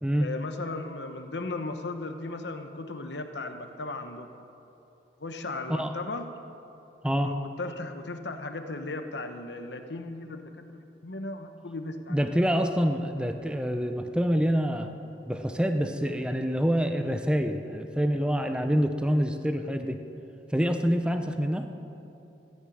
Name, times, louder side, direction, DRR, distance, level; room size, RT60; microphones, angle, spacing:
voice 1, 0.2-4.3 5.2-6.3 7.1-12.2, left 2 dB, 80° left, 7 dB, 1.2 m, -36 dB
voice 2, 12.1-15.0 15.3-20.0 20.5-21.7, equal, 5° right, 6 dB, 0.8 m, -26 dB
13.5 x 10.0 x 9.4 m, 3.0 s
head